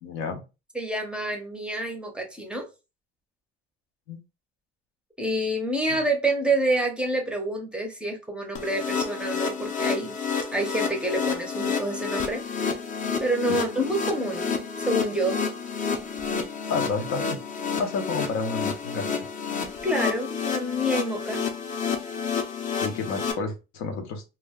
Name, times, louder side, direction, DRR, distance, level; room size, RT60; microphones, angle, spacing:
voice 1, 0.0-0.4 4.1-4.2 13.5-13.6 16.7-17.4 17.8-19.3 22.8-24.2, left 4 dB, 85° left, 0.7 m, -30 dB
voice 2, 0.7-2.7 5.2-10.1 10.5-12.4 13.2-15.5 19.8-21.4, right 1 dB, 5° right, 0.6 m, -27 dB
sound 1, 8.6-23.3, left 5 dB, 40° left, 0.5 m, -30 dB
2.3 x 2.1 x 3.4 m
cardioid pair, 140°, 20 cm